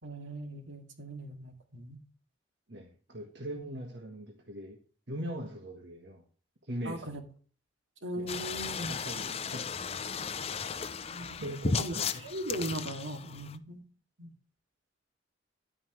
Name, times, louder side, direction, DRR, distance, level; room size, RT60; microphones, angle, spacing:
voice 1, 0.0-2.0 6.8-7.2 8.0-8.9 11.1-11.9 12.2-13.8 14.2-14.3, right 1 dB, 85° right, 5 dB, 2.5 m, -39 dB
voice 2, 2.7-4.8 5.1-6.2 6.6-7.2 8.2-8.3 8.9-9.8 11.4-12.3, right 1 dB, 65° right, 3 dB, 1.6 m, -40 dB
sound 1, 8.3-13.6, left 5 dB, 30° left, 0.6 m, -35 dB
11.0 x 9.5 x 3.2 m, 0.40 s
head